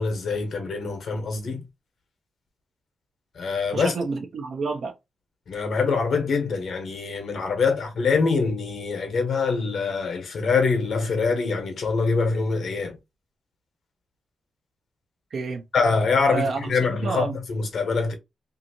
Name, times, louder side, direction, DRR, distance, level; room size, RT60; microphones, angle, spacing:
voice 1, 0.0-1.6 3.4-3.9 5.5-13.0 15.7-18.1, left 4 dB, 70° left, 1.1 m, -24 dB
voice 2, 3.7-4.9 15.3-15.6 16.3-17.4, right 4 dB, 70° right, 0.7 m, -29 dB
2.8 x 2.6 x 2.8 m
cardioid pair, 80°, 0 cm